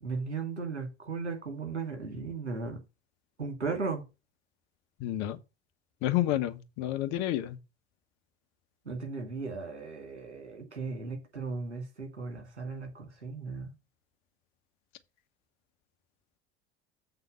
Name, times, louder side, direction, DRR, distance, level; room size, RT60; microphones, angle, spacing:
voice 1, 0.0-2.8 3.4-4.0 8.9-13.7, right 4 dB, 90° right, 2.4 m, -36 dB
voice 2, 5.0-5.4 6.0-7.6, left 13 dB, 55° left, 1.1 m, -30 dB
7.9 x 3.9 x 6.8 m
figure-of-eight pair, 70°, 34 cm